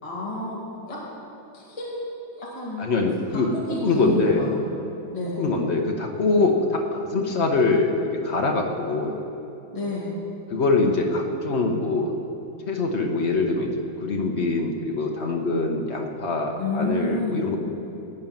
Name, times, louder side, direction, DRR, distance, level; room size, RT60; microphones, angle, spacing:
voice 1, 0.0-0.6 0.9-1.0 1.5-2.0 2.3-2.9 3.5-4.5 5.1-5.4 9.7-10.2 16.6-17.4, left 2 dB, 15° left, -6 dB, 2.2 m, -29 dB
voice 2, 2.8-3.5 3.8-4.4 5.4-9.2 10.5-12.1 12.7-13.7 14.0-17.6, left 3 dB, 50° left, 2 dB, 0.9 m, -23 dB
15.5 x 5.6 x 9.0 m, 3.0 s
omnidirectional pair, 2.3 m